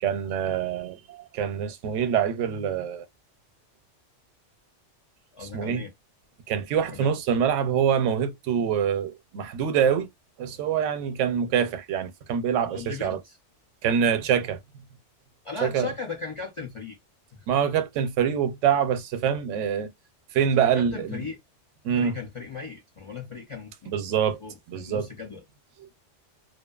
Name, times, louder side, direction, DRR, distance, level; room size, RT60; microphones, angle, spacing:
voice 1, 0.0-3.0 5.5-5.8 6.5-10.1 10.4-13.2 13.8-14.6 15.6-15.9 17.5-19.9 20.3-21.3 21.8-22.1 23.9-24.4 24.7-25.1, right 8 dB, 85° right, 0.9 m, -25 dB
voice 2, 5.3-5.9 6.9-7.1 12.7-13.4 15.4-17.0 17.3-17.5 20.6-21.4 21.9-25.4, left 4 dB, 55° left, 0.3 m, -37 dB
2.6 x 2.3 x 2.2 m
omnidirectional pair, 1.2 m